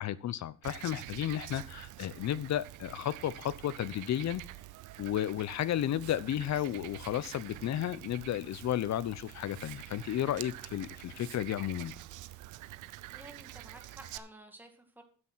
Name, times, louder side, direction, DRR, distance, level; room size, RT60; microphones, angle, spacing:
voice 1, 0.0-4.4 5.0-11.9, left 11 dB, 65° left, 18 dB, 0.8 m, -33 dB
Frog, 0.6-14.2, right 15 dB, 85° right, 0.7 m, -47 dB
Liquid, 6.0-6.2 6.9-7.5 8.5-8.7 9.1-9.2 9.5-9.8 11.2-11.4, right 12 dB, 70° right, 1.1 m, -53 dB
sound 1, 6.4-9.5, right 3 dB, 50° right, 3.0 m, -61 dB
voice 2, 13.1-15.0, right 2 dB, 5° right, 4 dB, 2.3 m, -52 dB
9.8 x 7.7 x 6.2 m, 0.41 s
cardioid pair, 90°, 30 cm